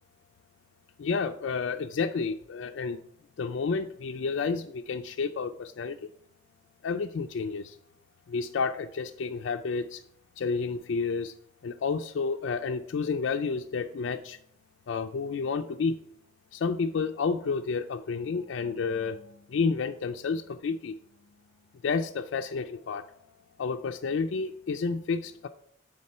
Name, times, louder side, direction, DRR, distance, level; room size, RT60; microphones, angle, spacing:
voice 1, 1.0-3.0 3.4-6.0 6.8-7.8 8.3-10.0 10.4-11.3 11.6-14.4 14.9-15.9 16.5-20.9 21.8-23.0 23.6-25.5, left 4 dB, 70° left, 5 dB, 0.4 m, -30 dB
8.7 x 3.6 x 5.4 m, 0.67 s
head